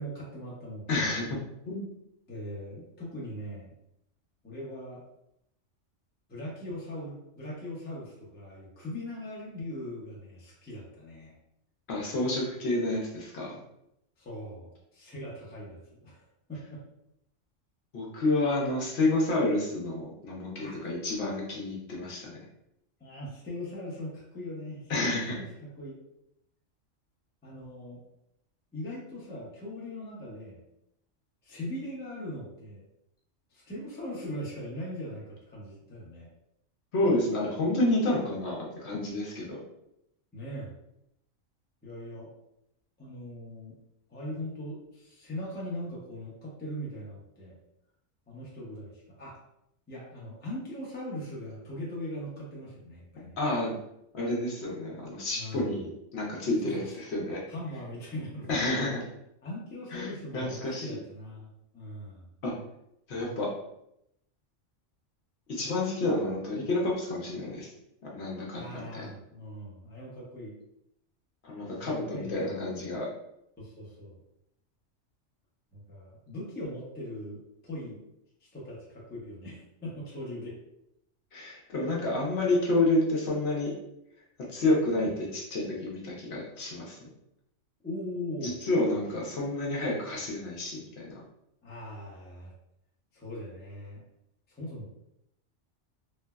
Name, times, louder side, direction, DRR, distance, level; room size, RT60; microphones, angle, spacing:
voice 1, 0.0-1.1 2.3-3.7 4.4-5.0 6.3-11.3 14.2-16.8 20.6-20.8 23.0-26.0 27.4-28.0 28.7-30.6 31.4-32.8 33.5-36.3 40.3-40.7 41.8-42.3 43.0-43.8 44.1-47.6 48.3-49.4 49.9-53.4 55.3-55.6 56.6-56.9 57.5-58.5 59.4-61.5 61.7-62.3 68.5-70.5 71.8-72.7 73.6-74.2 75.7-78.0 78.5-80.6 87.8-88.5 91.6-92.5 93.1-94.0 94.5-94.9, left 1 dB, 10° left, -5 dB, 0.5 m, -40 dB
voice 2, 0.9-1.4 1.7-1.8 11.9-13.6 17.9-22.4 24.9-25.4 36.9-39.6 53.4-53.7 54.1-55.9 56.1-57.4 58.5-59.0 59.9-60.9 62.4-62.5 63.1-63.5 65.5-67.7 68.0-69.1 71.4-73.1 81.3-83.7 84.5-87.1 88.4-91.1, left 2 dB, 65° left, -3 dB, 0.9 m, -29 dB
3.2 x 2.0 x 2.3 m, 0.80 s
omnidirectional pair, 1.3 m